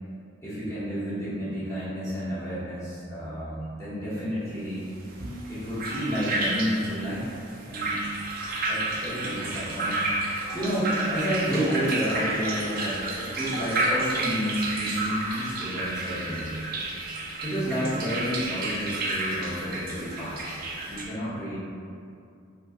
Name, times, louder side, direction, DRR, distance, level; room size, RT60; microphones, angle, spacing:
voice 1, 0.4-4.9 5.2-7.4 7.7-8.0 8.7-10.1 10.5-16.6 17.4-20.6 20.9-21.6, equal, 15° left, -12 dB, 0.8 m, -30 dB
sound 1, 5.1-21.0, right 2 dB, 45° right, 0.4 m, -31 dB
2.7 x 2.3 x 3.3 m, 2.4 s
head